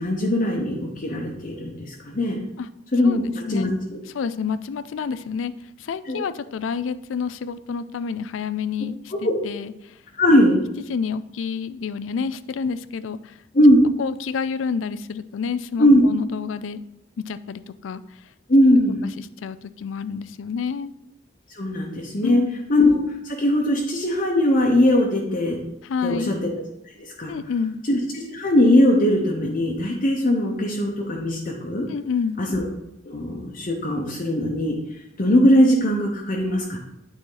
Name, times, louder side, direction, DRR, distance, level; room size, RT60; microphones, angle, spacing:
voice 1, 0.0-2.4 2.9-3.7 6.1-6.2 9.2-9.3 10.2-10.6 13.5-13.8 15.8-16.0 18.5-19.0 21.5-22.4 22.7-23.0 23.2-25.6 26.0-26.5 27.2-27.3 27.9-31.9 32.4-32.7 33.0-34.8 35.2-36.8, left 1 dB, 45° left, -1 dB, 0.9 m, -19 dB
voice 2, 4.1-5.5 5.8-10.0 10.3-10.4 10.9-13.4 14.0-16.8 17.3-18.0 19.2-20.9 22.2-22.6 25.8-26.3 27.3-27.8 31.9-32.4, left 6 dB, 85° left, 14 dB, 0.4 m, -29 dB
8.8 x 4.2 x 3.9 m, 0.84 s
head